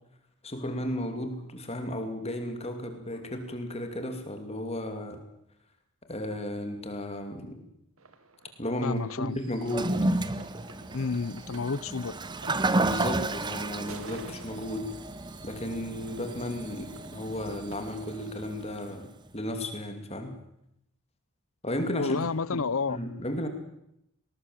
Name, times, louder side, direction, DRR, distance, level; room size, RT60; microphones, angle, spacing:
voice 1, 0.4-5.2 6.1-7.6 8.6-9.9 12.8-14.9 15.4-20.4 21.6-22.2 22.5-22.6 22.9-23.5, left 1 dB, 30° left, 2.9 m, -34 dB
sound 1, 8.0-18.3, right 4 dB, 75° right, 1.9 m, -51 dB
voice 2, 8.8-9.4 10.9-12.2 12.5-12.6 22.0-23.0, left 4 dB, 70° left, 0.7 m, -30 dB
Toilet flush, 9.6-18.9, right 2 dB, 20° right, 0.9 m, -32 dB
20.0 x 19.0 x 7.6 m
head